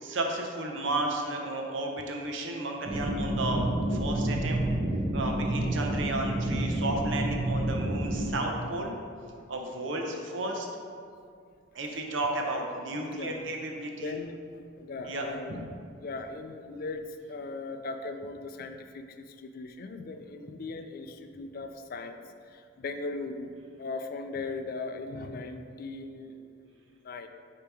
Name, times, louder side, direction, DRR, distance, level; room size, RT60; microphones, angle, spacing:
voice 1, 0.0-3.6 3.9-4.7 5.1-8.9 9.5-10.7 11.7-14.1 15.1-15.3 15.6-15.7, right 2 dB, 75° right, 1 dB, 0.7 m, -33 dB
sound 1, 2.9-8.3, right 1 dB, 30° right, 0.7 m, -29 dB
voice 2, 13.1-13.5 14.0-15.6 16.0-23.5 23.8-27.3, left 3 dB, 50° left, 7 dB, 0.3 m, -39 dB
6.8 x 2.9 x 4.7 m, 2.3 s
head